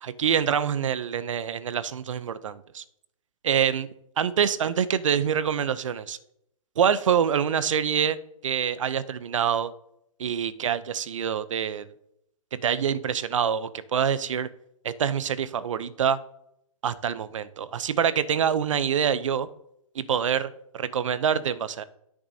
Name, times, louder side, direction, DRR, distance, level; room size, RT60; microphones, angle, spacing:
voice 1, 0.0-2.8 3.4-3.9 4.2-6.2 6.8-8.2 8.4-9.7 10.2-11.9 12.5-14.5 14.8-16.2 16.8-19.5 19.9-21.8, right 8 dB, 60° right, 16 dB, 0.6 m, -26 dB
16.5 x 6.1 x 2.7 m, 0.77 s
hypercardioid pair, 170°, 18 cm